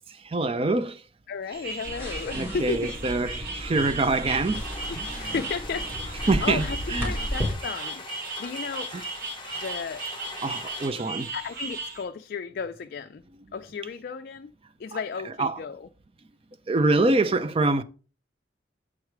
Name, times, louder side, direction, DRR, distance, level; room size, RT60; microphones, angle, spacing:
voice 1, 0.2-1.0 2.4-4.6 5.0-5.3 6.3-6.6 6.9-7.1 8.9-9.0 10.4-11.3 14.9-15.0 15.4-15.6 16.7-17.8, right 2 dB, 30° right, 0.5 m, -25 dB
voice 2, 1.3-2.9 4.9-5.9 6.2-8.0 8.4-8.9 9.6-10.1 11.3-13.2 13.5-14.5 14.8-15.9, left 5 dB, 50° left, 0.4 m, -34 dB
sound 1, 1.5-12.0, right 3 dB, 55° right, 2.3 m, -37 dB
sound 2, 1.8-7.5, equal, 15° right, 2.7 m, -34 dB
sound 3, 4.5-10.9, left 3 dB, 25° left, 1.0 m, -42 dB
7.2 x 4.7 x 4.9 m
head